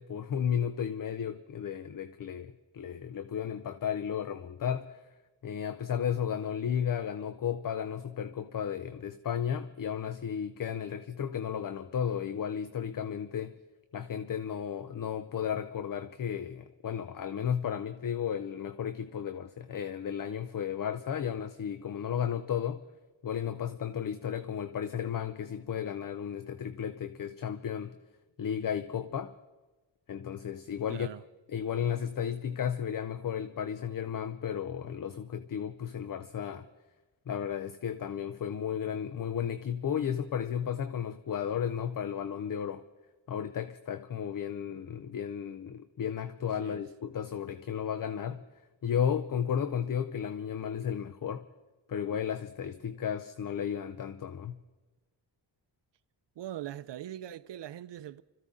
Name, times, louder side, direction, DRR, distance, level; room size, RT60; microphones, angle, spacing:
voice 1, 0.0-5.0 5.4-13.6 13.9-22.8 23.2-28.0 28.4-29.3 30.1-31.1 31.5-36.7 37.3-42.8 43.3-48.4 48.8-51.5 51.9-54.6, left 8 dB, 45° left, 0.7 m, -34 dB
voice 2, 30.9-31.2 46.6-46.8 56.4-58.2, right 12 dB, 70° right, 0.6 m, -41 dB
25.0 x 14.5 x 3.7 m
wide cardioid pair, 125°, 44 cm